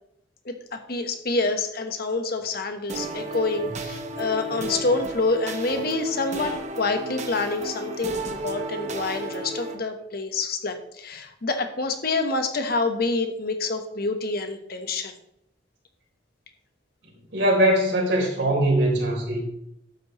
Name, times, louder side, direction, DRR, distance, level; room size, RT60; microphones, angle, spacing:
voice 1, 0.4-15.1, left 3 dB, 60° left, 6 dB, 1.3 m, -27 dB
sound 1, 2.9-9.7, right 1 dB, 40° right, 1.1 m, -33 dB
voice 2, 17.3-19.4, right 1 dB, 80° right, -2 dB, 3.7 m, -22 dB
11.5 x 8.6 x 3.2 m, 0.76 s
head